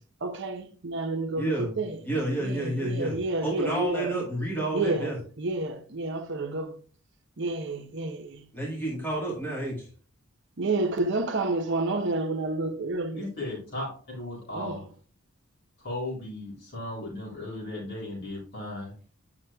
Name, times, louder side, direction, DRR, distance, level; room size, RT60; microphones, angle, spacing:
voice 1, 0.2-2.0 2.4-4.2 4.7-6.8 7.4-8.5 10.6-13.3 14.5-14.9, right 2 dB, 60° right, 0.8 m, -30 dB
voice 2, 1.4-1.7 2.0-3.1 3.4-5.2 8.5-9.9, right 1 dB, 10° left, 1.3 m, -30 dB
voice 3, 13.2-14.8 15.8-18.9, left 1 dB, 55° left, 3.7 m, -36 dB
9.4 x 5.8 x 2.2 m
head